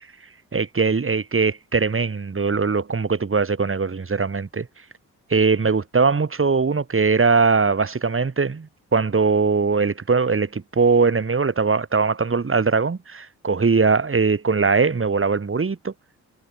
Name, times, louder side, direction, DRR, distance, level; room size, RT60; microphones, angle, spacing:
voice 1, 0.5-4.7 5.3-15.9, right 4 dB, 35° right, 7.2 m, -21 dB
supercardioid pair, 55°, 36 cm